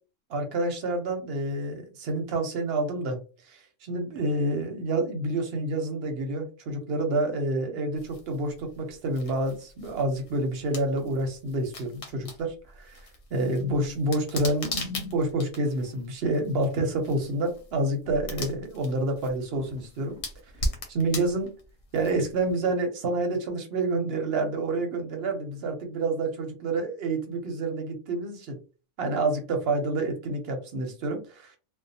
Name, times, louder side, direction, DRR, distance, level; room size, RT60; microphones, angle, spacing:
voice 1, 0.3-3.2 3.5-13.0 13.3-20.2 20.9-21.5 21.9-28.6 29.0-31.6, right 2 dB, 60° right, 4 dB, 0.8 m, -28 dB
sound 1, 8.0-22.5, left 1 dB, 80° left, 1.1 m, -40 dB
2.6 x 2.1 x 2.6 m, 0.34 s
omnidirectional pair, 1.3 m